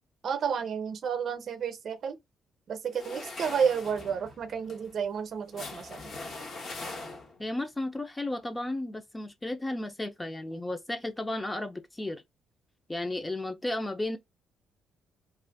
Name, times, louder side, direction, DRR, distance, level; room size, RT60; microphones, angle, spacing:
voice 1, 0.2-2.2 2.7-6.1, right 7 dB, 60° right, 0.7 m, -31 dB
sound 1, 2.9-7.5, left 3 dB, 55° left, 1.0 m, -42 dB
voice 2, 7.4-12.2 12.9-14.2, left 1 dB, 15° left, 0.6 m, -34 dB
2.5 x 2.4 x 3.4 m
cardioid pair, 90°, 0 cm